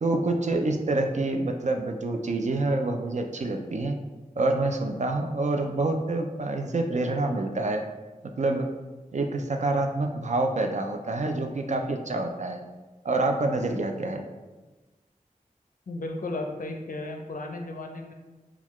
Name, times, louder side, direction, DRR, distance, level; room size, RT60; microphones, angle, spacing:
voice 1, 0.0-4.0 4.4-7.8 8.4-8.7 9.1-12.6 13.0-14.2, right 2 dB, 55° right, 3 dB, 0.4 m, -27 dB
voice 2, 15.9-18.1, left 2 dB, 75° left, 3 dB, 0.4 m, -34 dB
3.7 x 2.3 x 3.0 m, 1.2 s
wide cardioid pair, 60°, 14 cm